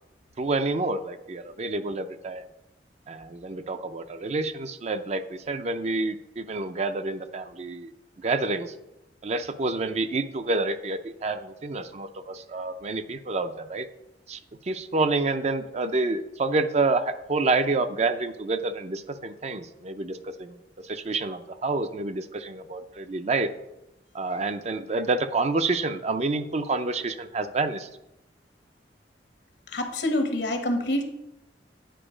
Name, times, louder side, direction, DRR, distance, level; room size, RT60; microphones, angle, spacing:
voice 1, 0.4-2.4 3.1-7.9 8.2-8.7 9.2-13.9 14.3-23.5 24.1-27.9, right 3 dB, 40° right, 10 dB, 0.5 m, -28 dB
voice 2, 29.7-31.0, left 1 dB, 75° left, 5 dB, 1.1 m, -26 dB
9.1 x 4.7 x 5.0 m, 0.89 s
head